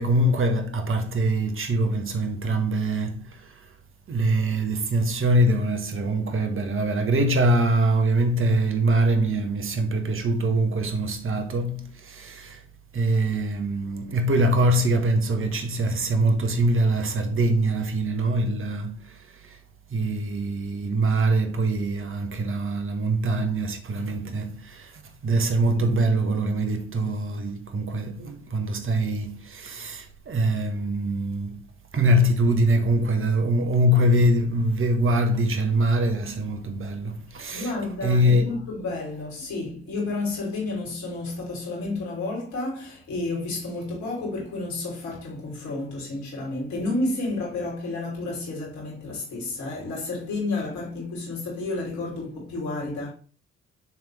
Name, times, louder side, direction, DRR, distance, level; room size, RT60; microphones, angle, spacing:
voice 1, 0.0-3.5 4.1-12.6 12.9-19.6 19.9-31.6 31.9-38.7, right 1 dB, 45° right, 1.5 m, -23 dB
voice 2, 37.5-53.1, left 2 dB, 70° left, 3.5 m, -31 dB
9.1 x 3.6 x 3.6 m
hypercardioid pair, 50°, 30 cm